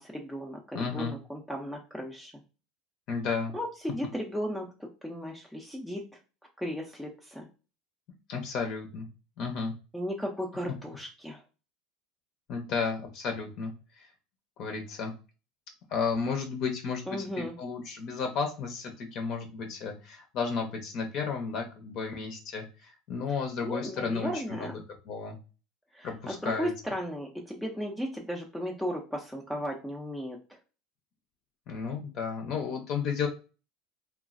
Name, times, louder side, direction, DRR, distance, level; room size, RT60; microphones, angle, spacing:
voice 1, 0.0-2.3 3.5-6.0 6.6-7.5 9.9-11.4 17.1-17.5 23.6-24.8 25.9-30.6, equal, ahead, 0 dB, 0.4 m, -35 dB
voice 2, 0.7-1.1 3.1-3.5 8.3-9.1 9.4-9.7 12.5-14.1 14.6-15.1 15.9-24.7 25.0-25.4 26.0-26.7 31.7-33.3, left 5 dB, 50° left, 4 dB, 0.5 m, -33 dB
3.0 x 2.3 x 2.4 m, 0.33 s
supercardioid pair, 135°, 0 cm